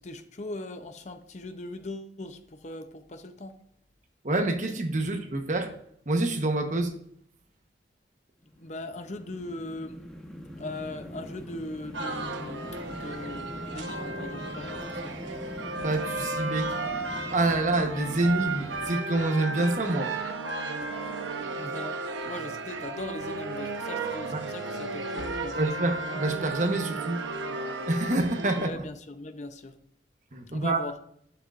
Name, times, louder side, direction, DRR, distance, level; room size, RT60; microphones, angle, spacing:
voice 1, 0.0-3.6 8.6-10.0 10.6-15.2 21.6-25.7 28.5-29.8 30.5-31.0, left 2 dB, 40° left, 8 dB, 0.7 m, -40 dB
voice 2, 4.2-5.7 6.1-6.9 15.8-16.7 17.3-20.1 24.3-24.4 25.5-27.2 27.9-28.7 30.3-30.8, right 2 dB, 40° right, 5 dB, 1.1 m, -27 dB
sound 1, 8.4-19.0, equal, 5° left, 1.1 m, -42 dB
sound 2, 11.9-28.7, right 3 dB, 85° right, 1.0 m, -34 dB
11.5 x 10.0 x 2.5 m, 0.68 s
head